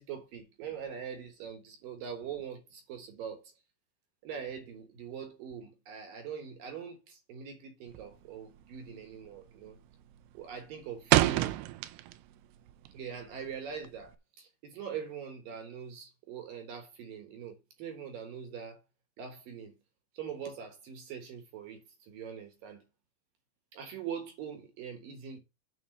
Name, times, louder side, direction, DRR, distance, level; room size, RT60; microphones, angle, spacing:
voice 1, 0.0-3.5 4.2-9.8 10.3-11.6 12.9-18.8 19.2-19.7 20.1-22.8 23.7-25.4, right 7 dB, 65° right, 2.4 m, -42 dB
sound 1, 7.9-8.3 8.6-8.9 9.3-9.7 10.0-12.4 12.7-14.1, right 16 dB, 85° right, 2.3 m, -28 dB
9.4 x 4.3 x 6.6 m
omnidirectional pair, 5.3 m